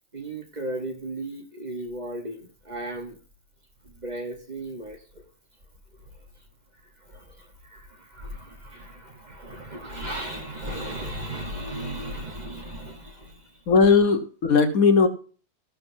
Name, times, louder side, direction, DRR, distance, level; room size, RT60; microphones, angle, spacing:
voice 1, 0.1-3.2 3.8-5.3 6.0-6.4 6.8-13.6, right 1 dB, 30° right, 3 dB, 1.2 m, -36 dB
voice 2, 13.7-15.1, left 5 dB, 75° left, 7 dB, 1.6 m, -18 dB
14.0 x 11.0 x 2.7 m, 0.40 s
omnidirectional pair, 1.5 m